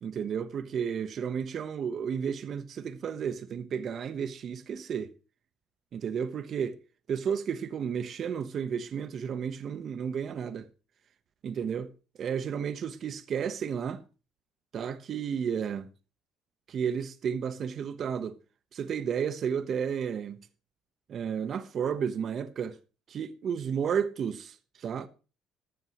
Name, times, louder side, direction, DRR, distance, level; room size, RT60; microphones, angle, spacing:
voice 1, 0.0-5.1 5.9-6.8 7.1-10.7 11.4-11.9 12.2-14.0 14.7-15.9 16.7-18.4 18.7-20.4 21.1-22.8 23.1-25.1, right 7 dB, 50° right, 1.1 m, -32 dB
15.0 x 12.5 x 3.1 m
cardioid pair, 100°, 0 cm